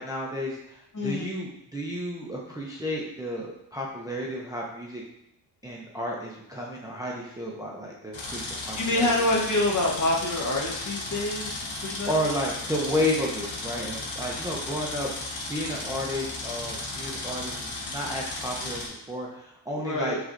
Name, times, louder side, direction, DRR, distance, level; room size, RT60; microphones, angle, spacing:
voice 1, 0.0-5.0 5.6-9.1 12.1-15.1 15.5-20.2, equal, 10° right, -3 dB, 0.5 m, -32 dB
voice 2, 0.9-1.3 8.3-12.2 19.8-20.2, left 2 dB, 40° left, -2 dB, 1.0 m, -27 dB
sound 1, 8.1-18.9, left 2 dB, 85° left, 1.1 m, -35 dB
5.9 x 3.2 x 2.5 m, 0.78 s
wide cardioid pair, 140°, 45 cm